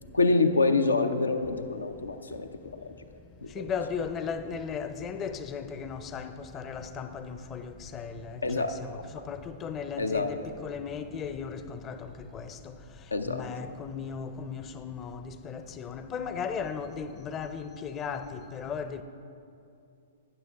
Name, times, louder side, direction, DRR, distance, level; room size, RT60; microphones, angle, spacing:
voice 1, 0.1-2.8 3.6-3.7 8.4-8.7 10.0-10.3 13.1-13.4, left 3 dB, 90° left, 0.6 m, -26 dB
voice 2, 2.8-19.0, left 6 dB, 25° left, 0.6 m, -37 dB
12.5 x 9.0 x 3.6 m
hypercardioid pair, 115°, 0 cm